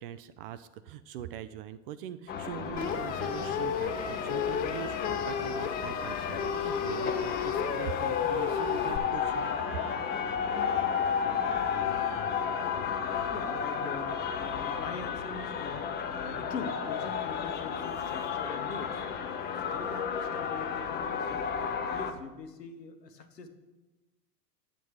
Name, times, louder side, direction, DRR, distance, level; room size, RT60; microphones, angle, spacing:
voice 1, 0.0-9.8, right 11 dB, 40° right, 13 dB, 0.4 m, -42 dB
sound 1, 2.3-22.1, left 7 dB, 20° left, 0.7 m, -33 dB
sound 2, 2.8-9.0, left 7 dB, 35° left, 1.8 m, -33 dB
Trumpet, 7.9-15.2, right 6 dB, 60° right, 1.6 m, -51 dB
voice 2, 13.0-23.5, left 5 dB, 80° left, 6 dB, 1.3 m, -43 dB
9.8 x 7.4 x 4.8 m, 1.1 s
hypercardioid pair, 100°, 48 cm